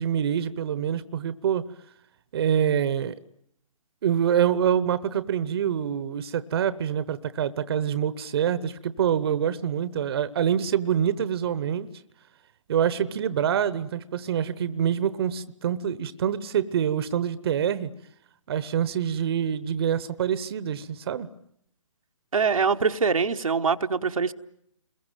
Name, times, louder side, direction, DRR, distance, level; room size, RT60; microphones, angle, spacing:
voice 1, 0.0-1.7 2.3-3.2 4.0-11.9 12.7-17.9 18.5-21.3, right 9 dB, 45° right, 1.0 m, -26 dB
voice 2, 22.3-24.3, right 5 dB, 75° right, 1.1 m, -23 dB
29.5 x 22.0 x 9.1 m
figure-of-eight pair, 140°, 18 cm